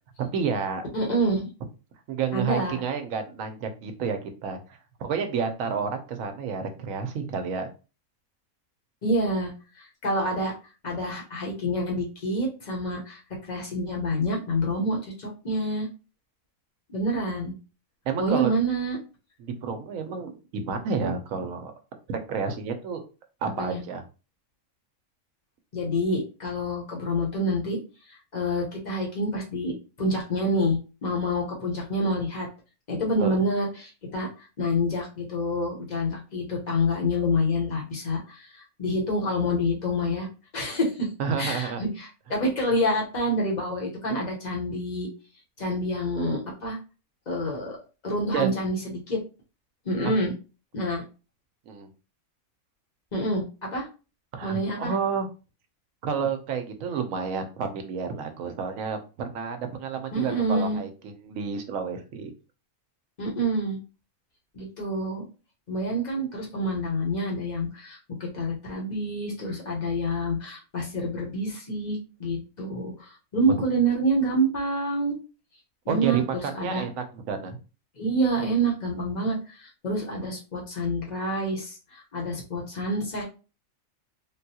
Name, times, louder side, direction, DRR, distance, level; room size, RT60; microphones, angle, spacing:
voice 1, 0.3-0.9 2.1-4.6 5.0-7.7 18.1-18.6 19.4-21.7 22.1-23.0 23.4-24.0 33.2-33.4 41.2-41.8 48.3-48.5 51.7-51.9 54.3-55.3 56.0-62.3 75.9-77.6, right 6 dB, 75° right, 6 dB, 1.0 m, -30 dB
voice 2, 0.9-1.5 2.3-2.8 9.0-9.5 9.8-10.5 10.8-13.2 13.5-15.9 16.9-17.5 18.2-19.0 23.6-23.8 25.7-27.8 28.1-32.5 32.9-40.3 40.5-41.1 41.4-45.1 45.6-46.8 47.3-47.8 48.0-49.2 49.8-50.3 50.7-51.0 53.1-53.9 54.4-54.9 60.1-60.8 63.2-63.8 64.5-65.2 65.7-75.2 75.8-76.9 77.9-83.2, equal, 35° left, -2 dB, 1.0 m, -27 dB
3.6 x 2.3 x 2.8 m, 0.32 s
omnidirectional pair, 1.4 m